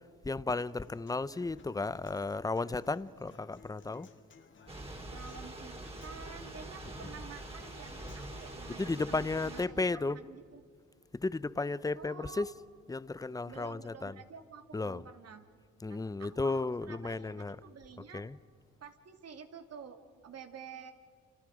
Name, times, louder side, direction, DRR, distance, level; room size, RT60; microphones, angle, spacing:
voice 1, 0.2-4.1 8.7-10.2 11.1-12.5 12.9-14.2 14.7-15.0 15.8-17.6 18.0-18.4, left 3 dB, 10° left, 0.7 m, -34 dB
Human voice / Acoustic guitar, 0.6-8.6, left 5 dB, 40° left, 1.9 m, -59 dB
Thunder / Rain, 4.7-9.7, right 2 dB, 20° right, 4.0 m, -45 dB
voice 2, 5.1-10.6 11.9-12.5 13.5-15.5 15.8-18.2 18.8-20.0 20.2-20.9, right 6 dB, 55° right, 2.9 m, -50 dB
29.5 x 29.0 x 5.0 m
cardioid pair, 90°, 30 cm